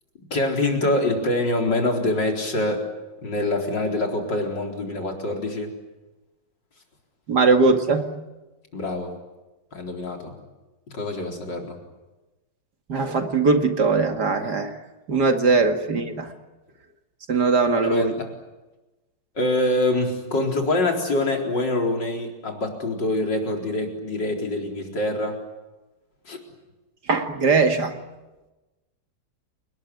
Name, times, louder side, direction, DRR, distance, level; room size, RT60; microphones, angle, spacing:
voice 1, 0.3-2.8 3.2-5.7 8.7-9.1 9.7-10.3 10.9-11.8 17.8-18.3 19.3-25.4 26.3-26.4, left 2 dB, 55° left, 2 dB, 4.8 m, -25 dB
voice 2, 7.3-8.1 12.9-14.7 15.1-16.3 17.3-18.1 27.1-28.0, right 4 dB, 50° right, 5 dB, 2.6 m, -20 dB
30.0 x 20.0 x 9.6 m, 1.1 s
omnidirectional pair, 2.4 m